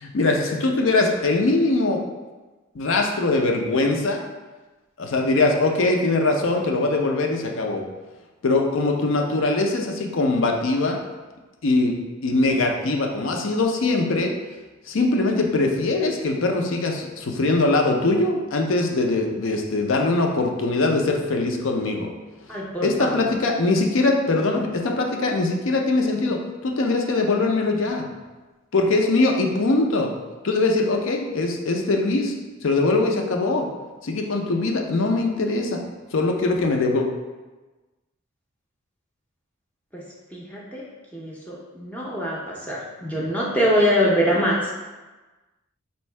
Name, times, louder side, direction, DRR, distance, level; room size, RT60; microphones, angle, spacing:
voice 1, 0.0-2.0 2.7-4.2 5.0-7.8 8.4-11.0 11.6-12.0 12.2-14.3 14.9-22.1 22.8-28.0 28.7-30.1 30.4-32.3 32.6-33.7 34.0-35.8 36.1-37.1, left 2 dB, 65° left, 2 dB, 0.5 m, -22 dB
voice 2, 22.5-23.3 39.9-40.0 40.3-40.8 41.1-44.7, equal, 5° left, -5 dB, 0.5 m, -24 dB
4.4 x 2.7 x 3.2 m, 1.2 s
head